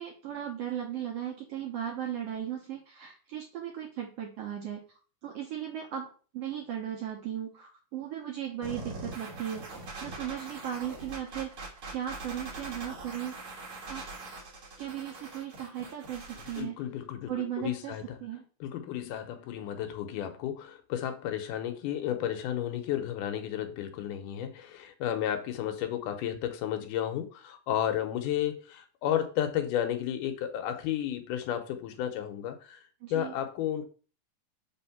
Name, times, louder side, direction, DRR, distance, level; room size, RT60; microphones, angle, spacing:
voice 1, 0.0-4.8 5.2-6.1 6.3-9.7 10.0-11.5 11.9-13.4 13.9-14.0 14.8-16.8 17.3-17.9 18.2-18.4 33.0-33.3, right 10 dB, 75° right, 1 dB, 1.5 m, -36 dB
sound 1, 8.6-16.6, right 3 dB, 50° right, 2.2 m, -42 dB
voice 2, 16.4-18.2 18.6-32.8 33.1-33.8, left 10 dB, 85° left, 8 dB, 2.3 m, -33 dB
5.1 x 3.5 x 5.7 m, 0.39 s
omnidirectional pair, 3.6 m